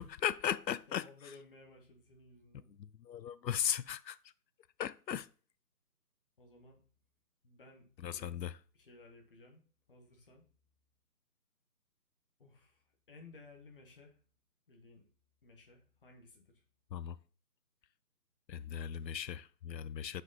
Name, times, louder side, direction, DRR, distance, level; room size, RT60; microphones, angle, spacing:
voice 1, 0.0-1.1 2.7-4.2 4.8-5.3 8.0-8.6 16.9-17.2 18.5-20.2, left 9 dB, 85° left, 0.6 m, -37 dB
voice 2, 0.9-2.7 6.4-6.8 7.4-8.5 8.7-9.6 9.9-10.4 12.4-14.2 14.7-15.1 15.4-16.6, left 3 dB, 35° left, 1.3 m, -58 dB
5.9 x 5.3 x 3.9 m
figure-of-eight pair, 165°, 49 cm